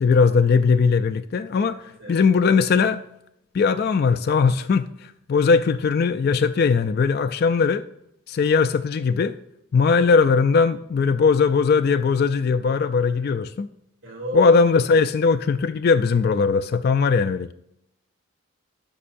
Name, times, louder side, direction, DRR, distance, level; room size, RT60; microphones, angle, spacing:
voice 1, 0.0-1.8 2.1-3.0 3.5-4.9 5.3-7.8 8.3-9.3 9.7-13.7 14.3-17.5, left 5 dB, 45° left, 10 dB, 0.3 m, -19 dB
voice 2, 1.8-2.7 13.2-13.3 14.0-14.4, equal, 70° right, -3 dB, 2.9 m, -37 dB
12.5 x 5.5 x 2.6 m, 0.80 s
head